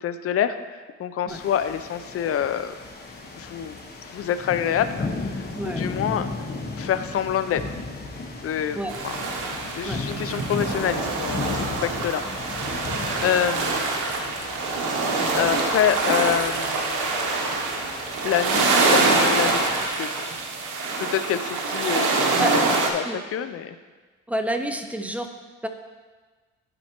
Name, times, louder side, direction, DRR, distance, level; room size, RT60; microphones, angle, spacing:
voice 1, 0.0-2.7 3.3-3.8 4.0-6.3 6.8-7.8 8.4-8.8 9.0-9.2 9.8-12.8 13.2-13.9 15.3-17.3 18.2-20.3 21.0-22.3 22.9-23.7, left 9 dB, 50° left, 11 dB, 0.5 m, -27 dB
sound 1, 1.3-19.9, left 3 dB, 30° left, 1.1 m, -36 dB
voice 2, 5.5-5.9 8.7-8.9 9.8-10.0 12.9-13.0 22.4-22.5 23.0-23.2 24.3-25.3 25.6-25.7, right 1 dB, 5° right, 6 dB, 0.6 m, -28 dB
sound 2, 8.9-22.9, right 3 dB, 85° right, 0.9 m, -25 dB
11.5 x 4.4 x 2.9 m, 1.4 s
cardioid pair, 90°, 30 cm